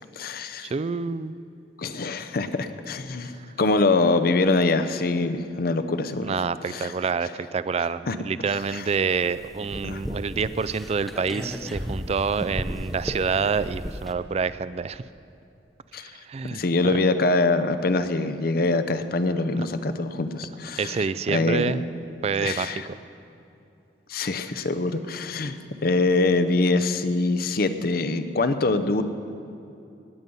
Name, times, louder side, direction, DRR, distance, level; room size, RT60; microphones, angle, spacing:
voice 1, 0.0-0.7 1.8-6.3 6.7-6.9 8.1-8.2 8.7-8.8 9.8-10.0 15.9-16.1 16.5-21.0 21.3-21.7 22.4-22.9 24.1-25.6 25.8-29.0, left 3 dB, 55° left, 10 dB, 0.7 m, -24 dB
voice 2, 0.6-1.3 6.2-15.0 16.2-16.6 19.6-19.7 20.8-21.8 22.2-23.0, right 5 dB, 35° right, 15 dB, 0.3 m, -27 dB
sound 1, 8.5-14.1, equal, ahead, 0.7 m, -35 dB
17.5 x 9.3 x 5.4 m, 2.6 s
head